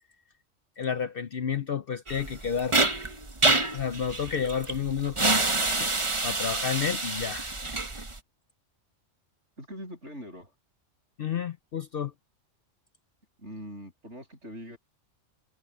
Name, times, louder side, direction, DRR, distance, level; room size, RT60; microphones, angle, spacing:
voice 1, 0.8-2.8 3.7-5.4 6.2-7.5 11.2-12.1, left 7 dB, 55° left, 0.8 m, -30 dB
sound 1, 2.1-8.2, right 2 dB, 25° right, 1.3 m, -27 dB
voice 2, 9.6-10.5 13.4-14.8, equal, 60° right, 8.2 m, -42 dB
omnidirectional pair, 1.4 m